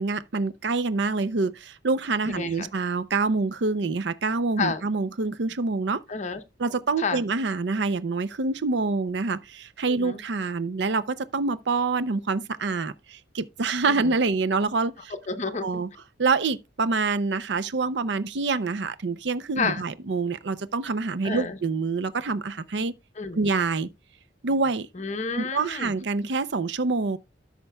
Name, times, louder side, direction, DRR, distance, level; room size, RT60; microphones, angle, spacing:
voice 1, 0.0-6.0 6.6-15.1 15.6-15.9 16.2-22.9 23.3-23.9 24.4-24.9 25.3-27.2, right 3 dB, 65° right, 0.6 m, -26 dB
voice 2, 2.3-2.7 4.6-4.8 6.1-6.4 7.0-7.2 9.9-10.2 13.9-14.1 15.3-15.7 19.6-19.8 21.2-21.6 23.2-23.4 24.9-25.9, left 4 dB, 40° left, 0.8 m, -30 dB
13.0 x 5.8 x 2.3 m
head